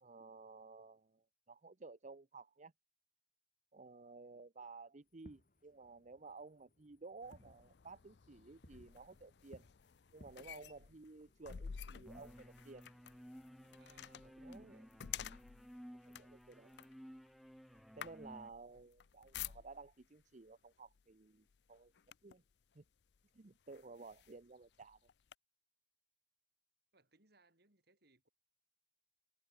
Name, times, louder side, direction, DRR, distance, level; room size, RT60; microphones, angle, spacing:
voice 1, 0.0-2.7 3.7-9.7 10.1-12.8 14.2-14.9 16.0-16.7 17.9-21.9 22.2-22.4 22.7-22.8 23.3-25.0, right 3 dB, 40° right, 0.8 m, -55 dB
Fireworks, 5.1-14.4, left 1 dB, 50° left, 3.6 m, -66 dB
sound 1, 7.2-20.0 20.9-21.1 21.5-22.5 23.1-23.2 23.7-25.3, left 9 dB, 65° left, 0.5 m, -52 dB
sound 2, 12.0-18.5, equal, ahead, 0.7 m, -56 dB
voice 2, 13.8-14.9 18.8-18.9 26.9-28.3, right 3 dB, 60° right, 6.3 m, -71 dB
head